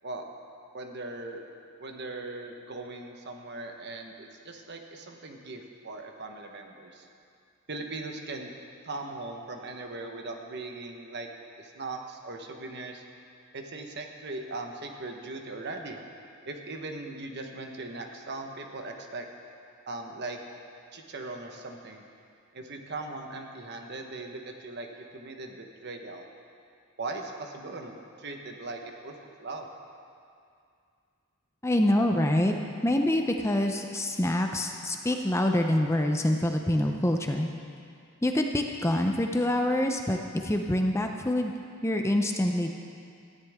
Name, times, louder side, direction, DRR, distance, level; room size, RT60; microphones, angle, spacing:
voice 1, 0.7-1.4 1.8-7.1 7.7-8.5 8.8-11.3 11.6-13.0 13.5-16.0 16.5-19.3 19.9-20.4 20.9-22.1 22.5-24.9 25.1-26.3 27.0-29.7, right 2 dB, 50° right, 3 dB, 1.2 m, -39 dB
voice 2, 31.6-32.5 32.8-37.5 38.2-41.5 41.8-42.7, left 1 dB, 15° left, 3 dB, 0.6 m, -26 dB
18.0 x 14.0 x 3.6 m, 2.4 s
head